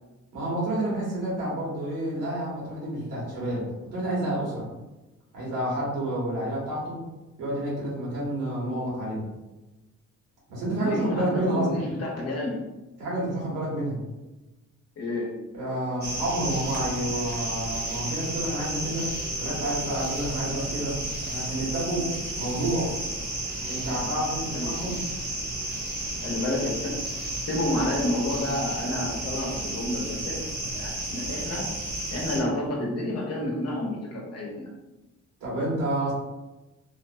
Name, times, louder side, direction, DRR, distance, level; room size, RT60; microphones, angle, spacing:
voice 1, 0.3-4.7 5.3-7.0 7.4-9.3 10.5-11.9 13.0-14.0 15.5-19.1 19.4-22.9 23.6-25.0 35.4-36.1, right 1 dB, 80° right, -6 dB, 1.4 m, -29 dB
voice 2, 10.8-12.6 15.0-15.4 24.5-24.7 26.2-30.4 30.7-31.7 32.1-34.7, left 1 dB, 55° left, -1 dB, 0.8 m, -30 dB
sound 1, 16.0-32.4, right 1 dB, 35° right, 0.9 m, -32 dB
2.9 x 2.1 x 2.5 m, 1.1 s
cardioid pair, 90°, 30 cm